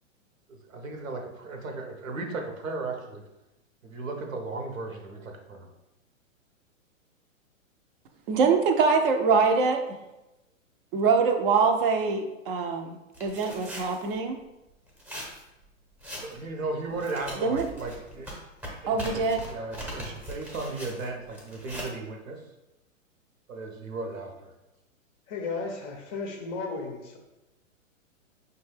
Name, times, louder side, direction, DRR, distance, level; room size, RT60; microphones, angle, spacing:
voice 1, 0.5-3.2 3.8-5.7 16.2-18.3 18.8-22.5 23.5-24.5, right 3 dB, 75° right, 3 dB, 0.9 m, -36 dB
voice 2, 8.3-9.8 10.9-14.4 17.4-17.7 18.9-19.4, right 5 dB, 45° right, 5 dB, 0.6 m, -24 dB
sound 1, 13.1-14.1 14.9-15.4 16.0-16.4 16.9-21.9, equal, 5° right, 0.7 m, -40 dB
voice 3, 25.3-27.2, left 4 dB, 25° left, 2 dB, 0.5 m, -34 dB
5.2 x 2.3 x 3.3 m, 0.97 s
hypercardioid pair, 120°, 40 cm